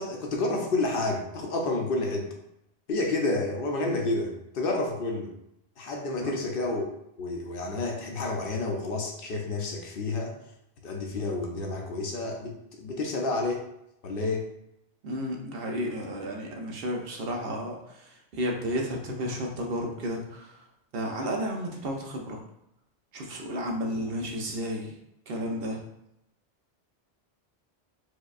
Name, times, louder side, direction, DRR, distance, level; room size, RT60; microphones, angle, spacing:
voice 1, 0.0-2.3 2.9-5.3 5.8-6.9 7.2-10.4 10.8-13.6 14.0-14.5, left 2 dB, 65° left, 1 dB, 0.7 m, -30 dB
voice 2, 15.0-20.7 20.9-22.4 23.1-25.0 25.3-25.8, equal, 65° right, 0 dB, 0.8 m, -32 dB
4.7 x 2.1 x 2.4 m, 0.81 s
omnidirectional pair, 1.1 m